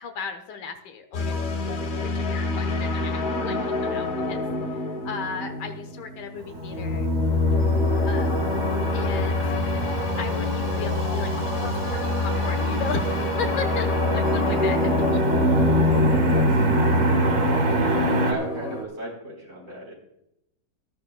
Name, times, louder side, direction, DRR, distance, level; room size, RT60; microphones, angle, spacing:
voice 1, 0.0-1.4 2.0-4.4 5.0-7.1 8.1-8.4 8.9-9.6 10.2-14.8 15.1-15.2, left 5 dB, 75° left, 6 dB, 1.8 m, -35 dB
sound 1, 1.1-18.8, left 2 dB, 55° left, 1.6 m, -24 dB
Motor vehicle (road), 6.4-18.3, right 2 dB, 60° right, 2.0 m, -29 dB
voice 2, 15.7-16.6 18.3-19.9, right 1 dB, 40° right, -2 dB, 4.8 m, -36 dB
18.0 x 11.5 x 2.3 m, 0.80 s
omnidirectional pair, 1.9 m